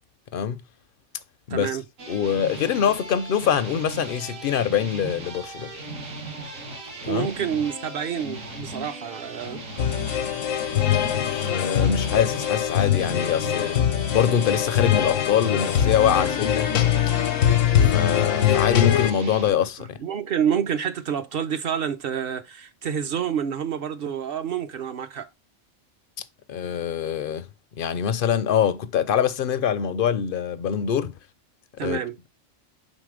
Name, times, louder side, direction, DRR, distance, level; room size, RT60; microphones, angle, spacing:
voice 1, 1.5-1.8 7.0-9.6 19.8-25.3 31.8-32.1, right 8 dB, 55° right, 0.8 m, -28 dB
sound 1, 2.0-19.5, right 1 dB, 85° right, 1.9 m, -37 dB
voice 2, 2.1-5.7 7.1-7.3 11.2-13.8 14.1-16.7 17.9-20.0 26.5-27.5 27.8-31.1 31.8-32.0, left 8 dB, 60° left, 0.6 m, -24 dB
sound 2, 9.8-19.1, left 10 dB, 80° left, 1.0 m, -22 dB
5.3 x 3.7 x 4.9 m
omnidirectional pair, 1.3 m